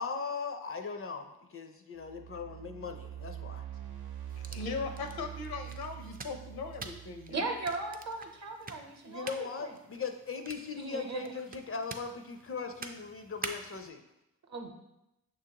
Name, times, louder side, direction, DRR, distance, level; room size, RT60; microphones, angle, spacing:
voice 1, 0.0-3.6 9.0-14.0, left 5 dB, 40° left, 6 dB, 0.4 m, -39 dB
sound 1, 2.0-8.2, right 11 dB, 85° right, 0.8 m, -45 dB
sound 2, 4.3-13.9, right 4 dB, 25° right, 0.4 m, -48 dB
voice 2, 4.5-7.5, left 4 dB, 75° left, 5 dB, 0.7 m, -39 dB
voice 3, 7.3-9.7 10.8-11.3 14.5-14.7, right 3 dB, 45° right, 4 dB, 0.8 m, -38 dB
6.1 x 2.5 x 2.8 m, 0.88 s
cardioid pair, 60°, 37 cm